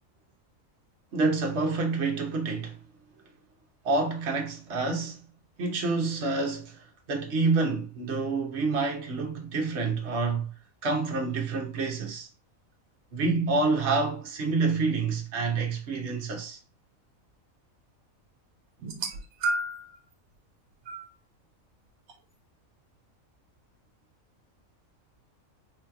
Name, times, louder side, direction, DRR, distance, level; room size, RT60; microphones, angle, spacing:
voice 1, 1.1-2.7 3.8-5.2 5.6-10.5 10.8-12.3 13.1-16.6, right 3 dB, 55° right, 1.1 m, -28 dB
sound 1, 18.8-20.0 20.9-21.1 22.1-22.2, right 2 dB, 80° right, 1.2 m, -31 dB
3.8 x 3.0 x 2.3 m
omnidirectional pair, 1.4 m